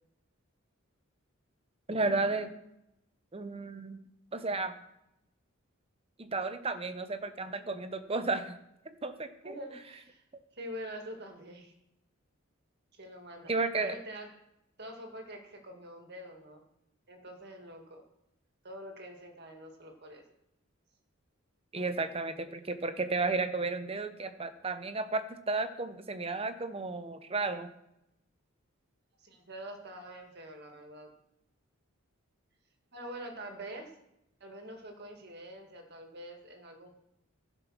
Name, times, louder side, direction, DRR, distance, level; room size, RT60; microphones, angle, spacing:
voice 1, 1.9-2.5 3.3-4.0 4.3-4.8 6.2-8.6 8.8-9.5 13.5-14.0 21.7-27.7, right 3 dB, 25° right, 10 dB, 0.8 m, -33 dB
voice 2, 9.4-10.2 10.5-11.7 12.9-13.5 13.8-14.3 14.8-16.6 17.1-18.0 18.6-20.2 29.2-31.1 32.9-33.9 34.4-36.9, equal, 50° right, 4 dB, 1.9 m, -45 dB
15.0 x 5.3 x 6.2 m, 0.85 s
head